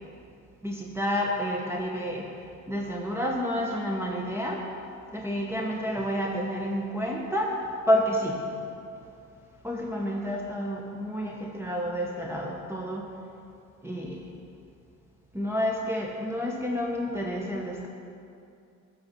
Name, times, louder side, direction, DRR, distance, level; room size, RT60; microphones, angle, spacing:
voice 1, 0.6-2.3 2.7-4.6 5.1-7.6 7.9-8.4 9.6-13.1 13.8-14.3 15.3-17.9, equal, 10° right, -2 dB, 1.0 m, -29 dB
11.0 x 4.1 x 6.1 m, 2.4 s
cardioid pair, 90°, 30 cm